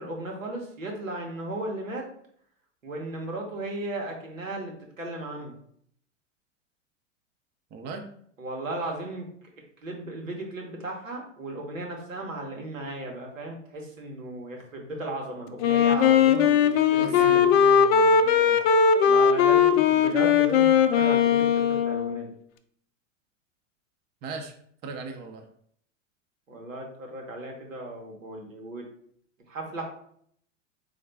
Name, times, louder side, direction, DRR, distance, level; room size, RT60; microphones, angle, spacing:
voice 1, 0.0-2.1 2.8-5.5 8.4-9.3 9.8-17.4 19.0-22.3 26.5-28.8 29.5-29.8, right 2 dB, 90° right, 0 dB, 1.1 m, -36 dB
voice 2, 7.7-8.1 17.0-18.6 24.2-24.6 24.8-25.4, right 4 dB, 25° right, 4 dB, 0.5 m, -38 dB
Wind instrument woodwind instrument, 15.6-22.3, left 7 dB, 55° left, 0.5 m, -20 dB
3.9 x 2.5 x 3.3 m, 0.65 s
hypercardioid pair, 95°, 38 cm